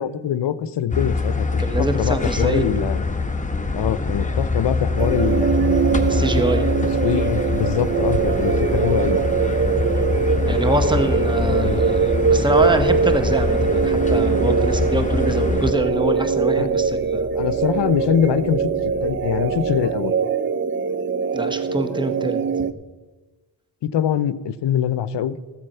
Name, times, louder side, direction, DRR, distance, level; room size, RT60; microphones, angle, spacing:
voice 1, 0.0-3.0 3.7-5.9 7.0-9.2 11.4-11.8 16.6-16.7 17.3-18.6 19.0-20.1 23.8-25.4, left 9 dB, 60° left, 16 dB, 0.8 m, -23 dB
sound 1, 0.9-15.7, left 3 dB, 15° left, 1.3 m, -24 dB
voice 2, 1.6-2.9 6.1-6.7 10.4-17.3 21.3-22.4, right 1 dB, 10° right, 8 dB, 1.3 m, -24 dB
sound 2, 3.3-19.8, right 1 dB, 55° right, 2.4 m, -39 dB
sound 3, 5.0-22.7, right 6 dB, 25° right, 0.5 m, -22 dB
14.0 x 7.4 x 5.6 m, 1.3 s
cardioid pair, 70°, 48 cm